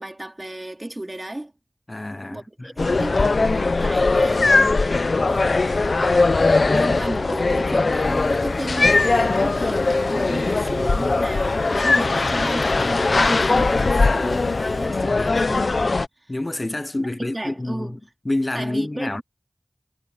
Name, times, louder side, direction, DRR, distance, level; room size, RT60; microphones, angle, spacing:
voice 1, 0.0-1.5 2.3-4.5 5.3-6.1 6.6-16.3 17.2-18.0 18.5-19.2, right 1 dB, 30° right, 3.6 m, -33 dB
voice 2, 1.9-2.7 15.1-15.5 16.3-18.0 18.2-19.2, left 1 dB, 40° left, 0.9 m, -28 dB
sound 1, 2.8-16.1, left 3 dB, 85° left, 0.8 m, -20 dB
Domestic sounds home sounds, 8.0-14.9, left 2 dB, 60° left, 5.2 m, -46 dB
wide cardioid pair, 45°, 0 cm